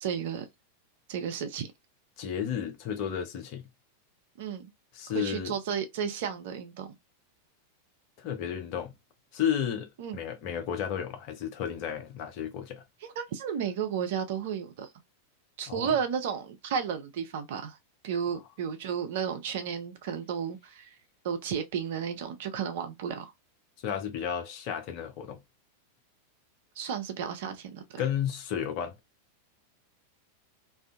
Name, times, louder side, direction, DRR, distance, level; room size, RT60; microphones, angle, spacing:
voice 1, 0.0-0.5 1.1-1.7 4.4-4.7 5.1-6.9 10.0-10.2 13.0-14.9 15.6-17.8 18.0-20.9 21.2-23.3 26.8-27.8, right 7 dB, 55° right, 0.6 m, -33 dB
voice 2, 2.2-3.6 4.9-5.5 8.2-8.9 9.3-12.8 15.7-15.9 23.8-25.4 28.0-29.0, left 9 dB, 45° left, 0.7 m, -32 dB
2.6 x 2.3 x 2.4 m
figure-of-eight pair, 90°, 0 cm